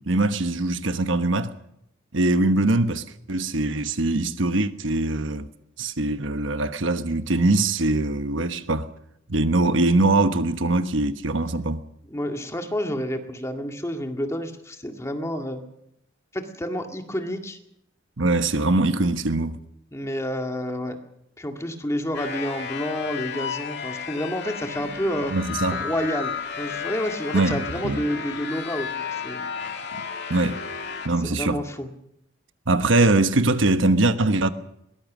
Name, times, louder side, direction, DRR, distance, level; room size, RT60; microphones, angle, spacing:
voice 1, 0.1-1.5 2.1-5.5 5.8-8.9 9.3-11.8 18.2-19.6 25.3-25.8 27.3-28.0 29.9-30.6 31.0-31.6 32.7-34.5, right 2 dB, 75° right, 1.2 m, -22 dB
voice 2, 12.1-15.6 16.3-17.6 19.9-21.0 21.4-25.4 25.7-28.9 29.2-29.4 31.2-31.9, equal, 15° left, 1.9 m, -29 dB
sound 1, 22.1-31.1, left 6 dB, 60° left, 2.3 m, -33 dB
22.0 x 19.0 x 6.2 m
head